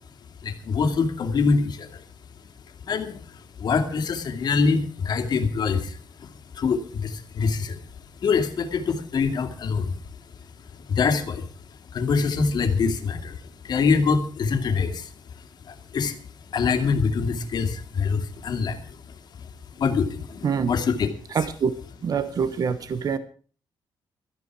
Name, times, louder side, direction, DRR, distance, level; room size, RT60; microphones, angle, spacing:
voice 1, 0.4-2.0 2.8-6.3 6.5-7.8 8.2-10.0 10.7-11.5 11.9-16.2 16.5-21.1, left 5 dB, 55° left, 6 dB, 2.3 m, -25 dB
voice 2, 21.3-21.7 22.0-23.2, right 6 dB, 50° right, 12 dB, 1.0 m, -25 dB
17.0 x 13.0 x 4.8 m, 0.40 s
cardioid pair, 140°, 8 cm